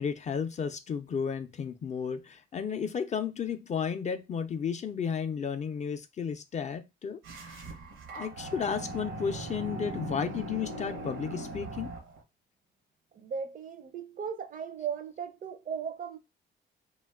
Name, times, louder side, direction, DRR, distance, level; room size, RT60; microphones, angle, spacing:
voice 1, 0.0-7.7 8.1-11.9, left 6 dB, 35° left, 0.4 m, -33 dB
sound 1, 7.2-12.2, right 2 dB, 80° right, 0.7 m, -40 dB
voice 2, 13.1-16.2, right 7 dB, 45° right, 0.4 m, -37 dB
2.4 x 2.2 x 3.4 m
cardioid pair, 90°, 20 cm